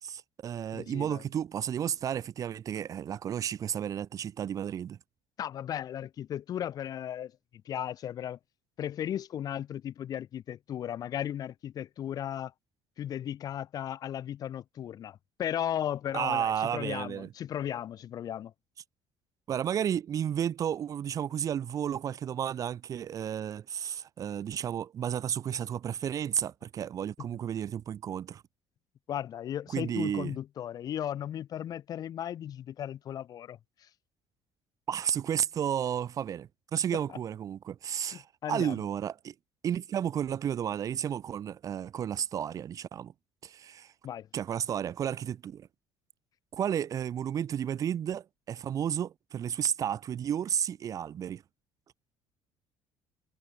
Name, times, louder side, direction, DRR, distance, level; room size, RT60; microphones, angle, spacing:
voice 1, 0.0-5.0 16.1-17.3 19.5-28.4 29.7-30.3 34.9-39.3 39.6-43.1 43.4-43.9 44.3-45.7 46.5-51.4, right 9 dB, 35° right, 2.9 m, -32 dB
voice 2, 0.7-1.2 5.4-7.3 7.7-8.4 8.8-12.5 13.0-18.5 29.1-33.6 37.1-37.2 38.1-38.7 44.0-44.3, left 10 dB, 40° left, 4.5 m, -36 dB
cardioid pair, 175°, 10 cm